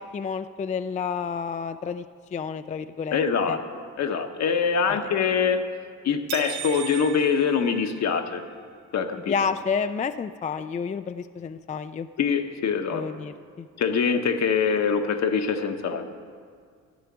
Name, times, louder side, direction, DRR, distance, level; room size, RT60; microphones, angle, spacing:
voice 1, 0.0-2.0 2.3-3.2 3.5-3.6 4.9-5.1 9.3-12.1 12.9-13.7, left 6 dB, 25° left, 11 dB, 0.3 m, -30 dB
voice 2, 3.1-3.6 4.0-5.6 6.0-8.4 8.9-9.3 12.2-13.0 13.8-16.1, left 6 dB, 60° left, 7 dB, 1.1 m, -24 dB
sound 1, 6.3-8.4, right 10 dB, 75° right, 0.7 m, -37 dB
14.0 x 5.8 x 9.5 m, 2.1 s
cardioid pair, 90°, 30 cm